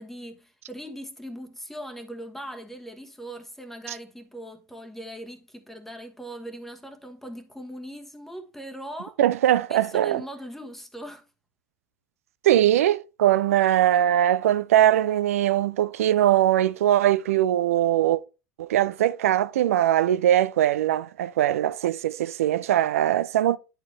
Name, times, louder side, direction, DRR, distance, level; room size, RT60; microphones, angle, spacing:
voice 1, 0.0-9.2 9.7-11.3, equal, 5° left, 1.3 m, -40 dB
voice 2, 9.2-10.2 12.4-18.2 18.6-23.6, right 12 dB, 65° right, 0.5 m, -21 dB
10.0 x 4.6 x 3.2 m
figure-of-eight pair, 80°, 8 cm